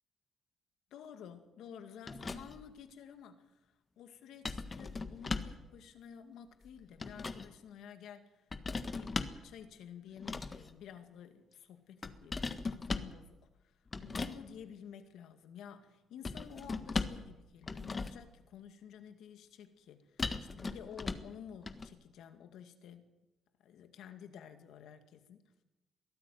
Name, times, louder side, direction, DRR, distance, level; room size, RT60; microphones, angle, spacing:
voice 1, 0.9-3.7 4.0-8.4 8.9-23.1 23.6-25.5, left 8 dB, 80° left, 8 dB, 2.2 m, -52 dB
sound 1, 2.1-2.7 4.4-5.6 6.6-7.5 8.5-9.5 10.2-10.7 12.0-13.2 13.9-14.4 16.2-17.3 17.6-18.3 20.2-21.3 21.7-21.9, left 4 dB, 30° left, 1.5 m, -38 dB
22.5 x 14.0 x 9.4 m, 1.0 s
cardioid pair, 90°, 0 cm